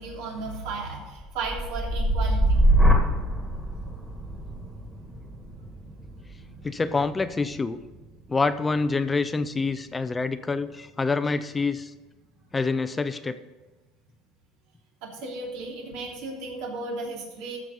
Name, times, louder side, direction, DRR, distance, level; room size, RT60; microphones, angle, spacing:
voice 1, 0.0-2.6 6.4-6.5 15.0-17.6, right 3 dB, 75° right, -1 dB, 3.3 m, -35 dB
sound 1, 1.2-9.2 9.7-10.1, equal, 5° right, 1.9 m, -25 dB
voice 2, 6.6-7.8 8.3-11.9 12.5-13.4, left 4 dB, 15° left, 12 dB, 0.4 m, -26 dB
14.0 x 6.0 x 5.4 m, 1.2 s
cardioid pair, 150°, 0 cm